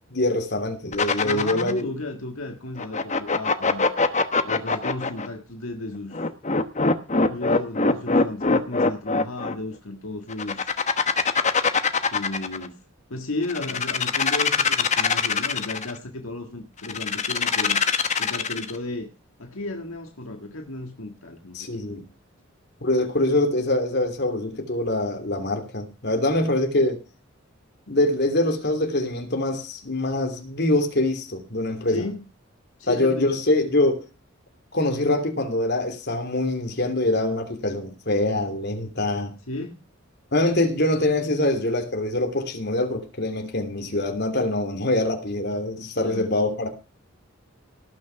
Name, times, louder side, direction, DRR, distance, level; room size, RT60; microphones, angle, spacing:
voice 1, 0.1-1.9 21.5-22.0 22.8-27.0 27.9-32.1 32.9-34.0 34.7-39.3 40.3-46.7, left 1 dB, 50° left, 2.9 m, -24 dB
sound 1, 0.9-1.8 2.8-5.3 6.1-9.5 10.3-12.7 13.4-15.9 16.8-18.8, left 4 dB, 35° left, 1.1 m, -22 dB
voice 2, 1.2-3.9 4.4-6.3 7.3-10.7 12.1-12.8 13.1-17.9 18.2-19.1 19.4-21.8 31.9-32.2 32.8-33.3 39.5-39.8 45.8-46.3, left 2 dB, 75° left, 1.8 m, -34 dB
18.5 x 6.3 x 5.8 m
head